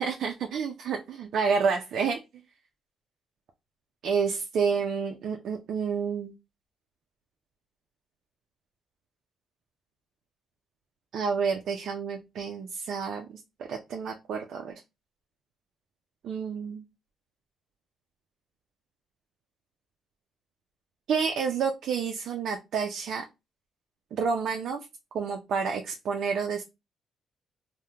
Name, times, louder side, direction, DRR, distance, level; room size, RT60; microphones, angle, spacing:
voice 1, 0.0-2.2 4.0-6.3 11.1-13.3 13.7-14.7 16.2-16.8 21.1-23.2 24.1-24.8 25.1-26.6, right 5 dB, 70° right, 2 dB, 0.4 m, -29 dB
3.4 x 2.1 x 2.7 m, 0.24 s
cardioid pair, 90°, 0 cm